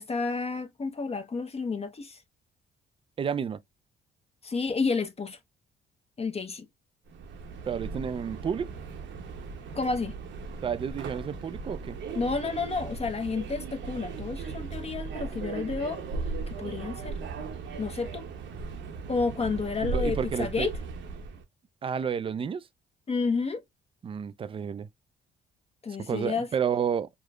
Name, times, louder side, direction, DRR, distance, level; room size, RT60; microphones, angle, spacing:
voice 1, 0.0-2.2 4.4-5.4 6.2-6.7 9.7-10.2 12.1-16.0 16.5-17.1 17.8-18.3 19.1-20.8 23.1-23.6 25.8-26.5, left 4 dB, 30° left, 0.7 m, -30 dB
voice 2, 3.2-3.6 7.7-8.7 10.6-12.0 19.9-20.7 21.8-22.7 24.0-24.9 26.0-27.1, right 7 dB, 30° right, 0.3 m, -30 dB
Subway metro underground, 7.1-21.4, right 4 dB, 70° right, 0.8 m, -37 dB
4.8 x 2.1 x 2.2 m
cardioid pair, 90°, 20 cm